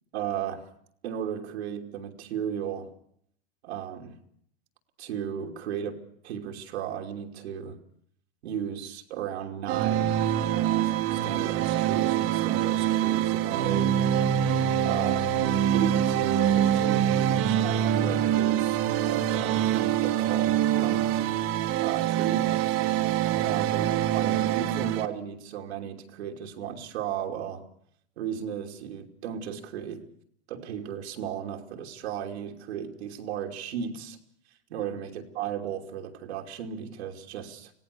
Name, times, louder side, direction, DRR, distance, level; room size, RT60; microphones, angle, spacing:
voice 1, 0.1-0.6 1.0-2.9 3.6-4.2 5.0-7.8 8.4-10.2 10.5-14.0 14.8-15.3 15.7-21.0 21.8-22.5 23.4-27.6 28.2-30.1 30.5-34.2 34.7-37.7, right 9 dB, 85° right, 2 dB, 2.9 m, -35 dB
sound 1, 9.7-25.1, right 10 dB, 45° right, 1.7 m, -25 dB
26.0 x 17.0 x 6.8 m, 0.66 s
supercardioid pair, 130°, 32 cm